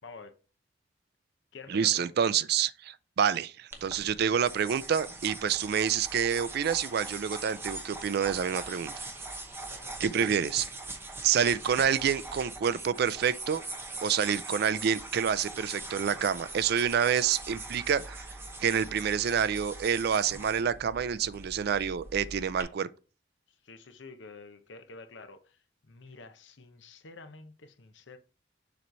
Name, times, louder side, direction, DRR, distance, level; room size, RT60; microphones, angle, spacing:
voice 1, 0.0-0.4 1.5-2.0 9.6-10.5 18.9-19.0 20.3-20.6 23.6-28.2, left 3 dB, 70° left, 0.8 m, -49 dB
voice 2, 1.7-9.0 10.0-10.6 11.2-13.6 14.0-18.3 18.6-22.9, right 7 dB, 55° right, 0.4 m, -28 dB
sound 1, 3.7-22.6, right 2 dB, 15° right, 0.9 m, -42 dB
6.9 x 3.1 x 5.3 m
head